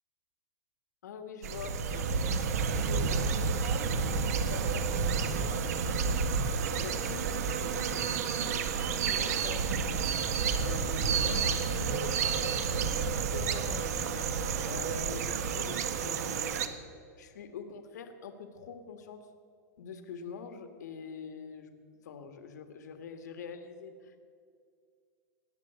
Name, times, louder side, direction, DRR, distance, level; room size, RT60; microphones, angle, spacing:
voice 1, 1.0-2.4 2.8-3.9 4.3-4.9 5.2-6.3 6.8-10.0 10.6-14.3 14.6-16.7 17.2-19.2 19.8-21.7 22.0-24.2, left 5 dB, 85° left, 7 dB, 1.7 m, -44 dB
sound 1, 1.4-16.7, right 6 dB, 65° right, 1.3 m, -30 dB
19.0 x 8.6 x 8.1 m, 2.2 s
supercardioid pair, 175°, 9 cm